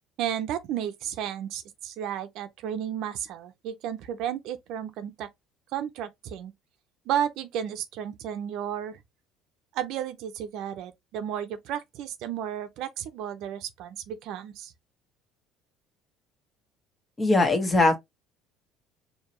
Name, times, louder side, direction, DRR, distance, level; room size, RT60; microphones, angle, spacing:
voice 1, 0.2-5.3 5.7-6.5 7.1-9.0 9.7-14.7, right 10 dB, 70° right, 0.7 m, -33 dB
voice 2, 17.2-18.0, left 2 dB, 20° left, 1.5 m, -20 dB
4.7 x 2.9 x 3.0 m
cardioid pair, 115°, 0 cm